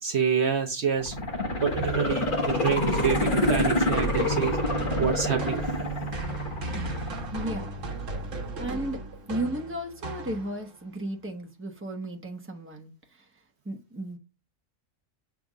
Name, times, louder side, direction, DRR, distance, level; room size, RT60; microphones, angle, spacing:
voice 1, 0.0-1.2 1.6-4.6 5.0-5.6, right 6 dB, 60° right, 1.0 m, -27 dB
sound 1, 1.0-8.0 8.3-8.4, left 2 dB, 40° left, 1.6 m, -28 dB
Bowed string instrument, 1.8-7.7, right 9 dB, 45° right, 2.1 m, -38 dB
sound 2, 3.0-10.8, right 2 dB, 75° right, 1.4 m, -36 dB
voice 2, 7.3-7.7 8.6-9.0 9.3-13.3 13.6-14.2, right 1 dB, 10° right, 1.1 m, -34 dB
7.0 x 3.4 x 5.0 m
omnidirectional pair, 1.3 m